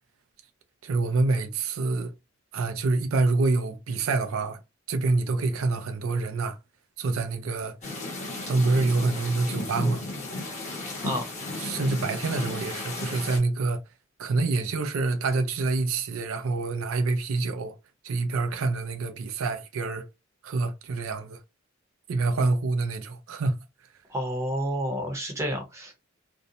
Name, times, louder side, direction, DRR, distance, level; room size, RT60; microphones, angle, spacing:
voice 1, 0.8-2.1 2.5-4.6 4.9-6.6 7.0-7.7 8.4-10.0 11.6-13.8 14.2-17.7 18.0-20.0 20.4-21.4 22.1-23.6, right 3 dB, 85° right, 0.4 m, -26 dB
sound 1, 7.8-13.4, left 2 dB, 35° left, 0.8 m, -34 dB
voice 2, 24.1-26.0, equal, 15° right, 0.7 m, -30 dB
2.5 x 2.0 x 2.7 m
head